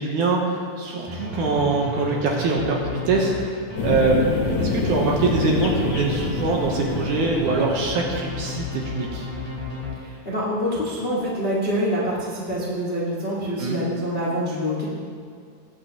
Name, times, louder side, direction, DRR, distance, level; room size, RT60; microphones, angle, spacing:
voice 1, 0.0-4.2 4.6-9.3 13.6-13.8, right 3 dB, 70° right, -1 dB, 2.1 m, -23 dB
sound 1, 1.1-10.4, left 2 dB, 10° right, 2.7 m, -33 dB
sound 2, 3.7-8.7, left 4 dB, 65° left, 2.1 m, -27 dB
voice 2, 10.0-14.8, equal, 35° left, -6 dB, 0.8 m, -26 dB
19.5 x 8.3 x 3.0 m, 2.2 s
omnidirectional pair, 4.3 m